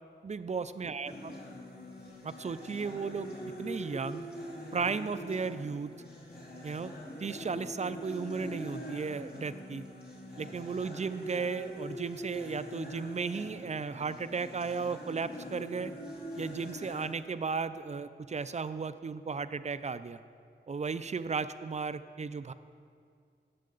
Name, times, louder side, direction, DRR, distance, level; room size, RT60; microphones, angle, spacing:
voice 1, 0.2-1.3 2.2-4.3 4.7-5.9 6.6-6.9 7.2-9.8 10.4-15.9 16.4-20.2 20.7-22.5, right 5 dB, 40° right, 13 dB, 0.4 m, -35 dB
sound 1, 1.1-17.1, equal, 55° left, 2.6 m, -43 dB
17.5 x 7.5 x 3.9 m, 2.3 s
wide cardioid pair, 85°, 18 cm